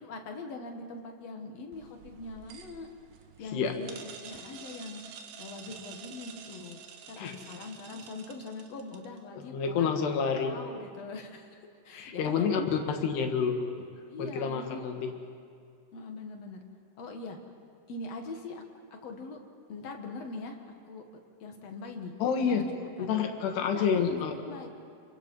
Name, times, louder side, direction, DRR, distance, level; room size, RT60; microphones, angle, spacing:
voice 1, 0.0-2.9 3.4-5.0 5.4-6.8 7.1-9.9 10.5-12.8 14.1-15.2 15.9-16.6 17.0-17.4 17.9-18.6 18.9-19.4 19.7-20.6 20.9-21.0 21.4-22.1 22.5-23.1 23.6-24.7, left 3 dB, 50° left, 3 dB, 2.2 m, -42 dB
sound 1, 1.7-9.2, right 7 dB, 85° right, 3.4 m, -49 dB
voice 2, 9.4-10.5 11.9-12.6 12.9-13.6 14.2-15.1 22.2-22.7 23.0-24.3, left 6 dB, 85° left, 4 dB, 3.8 m, -28 dB
29.0 x 22.5 x 5.5 m, 2.2 s
omnidirectional pair, 4.6 m